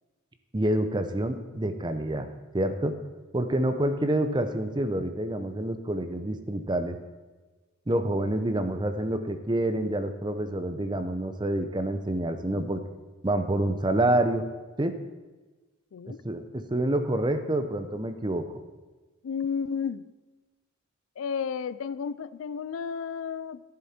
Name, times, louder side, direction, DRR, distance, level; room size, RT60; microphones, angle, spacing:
voice 1, 0.5-2.3 2.5-2.9 3.3-7.0 7.9-12.8 13.2-14.4 14.8-14.9 16.2-18.4, right 1 dB, 20° right, 8 dB, 0.7 m, -27 dB
voice 2, 15.9-16.2 19.2-20.1 21.2-23.6, left 6 dB, 70° left, 16 dB, 0.4 m, -32 dB
13.5 x 7.6 x 4.3 m, 1.2 s
head